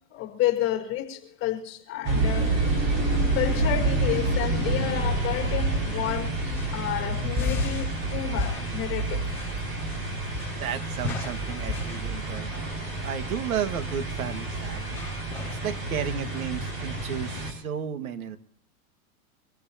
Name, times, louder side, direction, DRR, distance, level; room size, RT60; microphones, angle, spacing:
voice 1, 0.1-2.8 3.3-9.3 9.5-9.7 12.9-13.0, left 12 dB, 30° left, 4.5 m, -31 dB
sound 1, 2.0-17.5, right 2 dB, 35° right, 5.9 m, -28 dB
sound 2, 6.2-16.1, left 4 dB, 5° left, 4.3 m, -37 dB
voice 2, 10.6-12.5 13.0-15.0 15.6-18.4, right 8 dB, 75° right, 1.9 m, -33 dB
25.0 x 16.0 x 2.9 m
hypercardioid pair, 135°, 43 cm